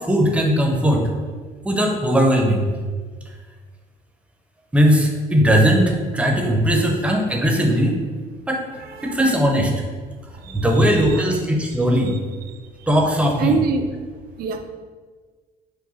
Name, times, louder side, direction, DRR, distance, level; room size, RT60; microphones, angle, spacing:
voice 1, 0.1-1.1 1.6-2.7 4.7-8.0 8.5-8.6 9.0-9.7 10.5-12.1 12.9-13.6, equal, 5° right, 1 dB, 0.6 m, -18 dB
voice 2, 8.7-9.1 10.4-11.3 13.4-13.9 14.4-14.6, right 5 dB, 65° right, 6 dB, 0.5 m, -25 dB
4.8 x 2.1 x 4.1 m, 1.5 s
cardioid pair, 110°, 17 cm